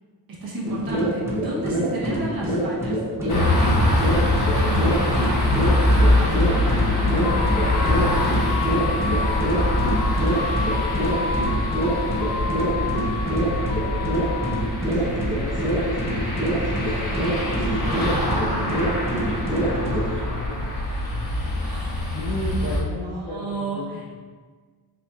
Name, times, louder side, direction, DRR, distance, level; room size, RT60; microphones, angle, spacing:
voice 1, 0.3-4.0 4.5-5.4 5.9-8.6 21.6-21.9 23.0-24.0, right 1 dB, 55° right, -5 dB, 1.1 m, -33 dB
sound 1, 0.6-20.1, right 1 dB, 5° right, 0.6 m, -26 dB
sound 2, 3.3-22.8, left 1 dB, 50° left, 1.2 m, -24 dB
sound 3, 7.2-14.6, left 6 dB, 65° left, 0.5 m, -30 dB
voice 2, 12.6-13.6 14.9-19.0 19.4-20.7 22.1-24.0, left 1 dB, 35° left, -8 dB, 1.4 m, -35 dB
4.3 x 4.0 x 2.3 m, 1.5 s
wide cardioid pair, 150°, 43 cm